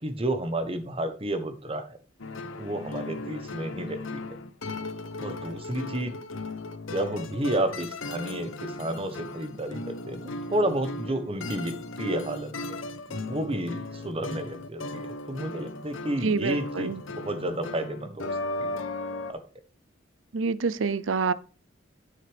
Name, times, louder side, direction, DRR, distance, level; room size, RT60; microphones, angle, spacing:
voice 1, 0.0-2.0 2.6-4.2 5.2-6.1 6.9-12.5 13.1-18.3 18.6-18.8 19.3-19.4, right 1 dB, 30° right, 1.2 m, -31 dB
sound 1, 2.2-19.3, left 2 dB, 90° left, 0.9 m, -37 dB
voice 2, 16.2-17.0 20.3-21.3, right 4 dB, 80° right, 0.6 m, -27 dB
9.6 x 7.6 x 3.5 m
head